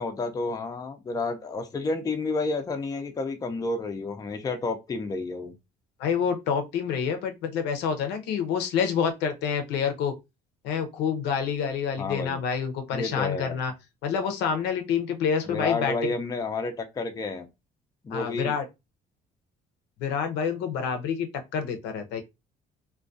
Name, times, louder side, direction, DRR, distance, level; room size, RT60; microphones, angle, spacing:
voice 1, 0.0-5.5 12.0-12.4 12.9-13.6 15.5-17.5 18.0-18.5, left 3 dB, 20° left, 0.4 m, -30 dB
voice 2, 6.0-10.1 10.6-13.7 14.0-15.9 18.1-18.6 20.0-21.3 21.5-22.2, left 7 dB, 85° left, 0.6 m, -27 dB
2.3 x 2.2 x 2.5 m
cardioid pair, 110°, 17 cm